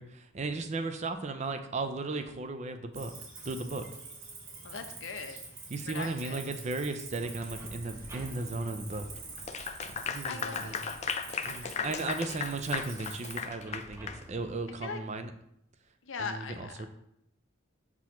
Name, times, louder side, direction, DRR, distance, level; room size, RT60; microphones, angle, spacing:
voice 1, 0.0-3.1 3.5-3.8 5.7-9.1 10.1-10.8 11.4-15.3 16.2-16.9, right 3 dB, 35° right, 8 dB, 0.5 m, -36 dB
Cricket, 2.9-13.4, right 3 dB, 80° right, 1.7 m, -46 dB
voice 2, 4.6-5.4 5.8-6.4 10.3-11.0 11.6-12.4 14.8-15.0 16.0-16.9, left 5 dB, 70° left, 6 dB, 0.7 m, -41 dB
sound 1, 7.2-14.6, equal, 10° right, 1.0 m, -52 dB
Clapping / Applause, 9.4-14.2, left 6 dB, 35° left, 0.4 m, -36 dB
6.1 x 3.1 x 5.7 m, 0.75 s
head